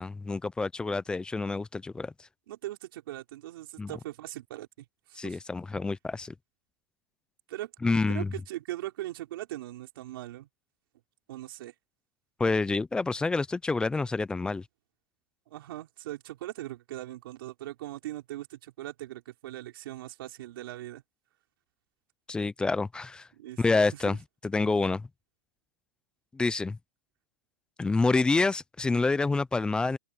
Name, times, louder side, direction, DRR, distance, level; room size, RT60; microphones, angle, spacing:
voice 1, 0.0-2.1 3.8-3.9 5.2-6.3 7.8-8.3 12.4-14.6 22.3-23.3 23.6-24.2 24.4-25.1 26.3-26.8 27.8-30.0, left 3 dB, 5° left, 0.5 m, -27 dB
voice 2, 2.5-5.4 7.5-10.5 11.3-11.7 15.5-21.0 23.3-23.6 23.9-24.2, right 15 dB, 70° right, 5.0 m, -40 dB
supercardioid pair, 150°, 12 cm